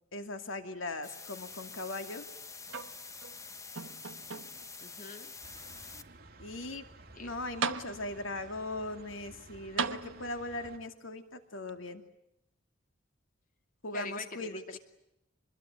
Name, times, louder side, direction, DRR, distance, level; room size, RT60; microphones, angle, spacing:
voice 1, 0.1-2.2 6.4-6.8 7.2-12.0 13.8-14.8, left 2 dB, 90° left, 7 dB, 2.5 m, -39 dB
sound 1, 1.0-6.0, left 4 dB, 15° left, 1.1 m, -47 dB
sound 2, 2.7-3.4 3.8-4.8 5.5-5.6 7.1-7.2 7.6-8.4 9.8-10.6 11.7-11.8, right 6 dB, 85° right, 1.2 m, -37 dB
voice 2, 4.8-5.3 7.1-7.3 13.9-14.8, left 3 dB, 45° left, 6 dB, 2.3 m, -44 dB
sound 3, 5.4-10.8, right 2 dB, 50° right, 2.6 m, -54 dB
26.0 x 21.5 x 9.3 m, 0.84 s
head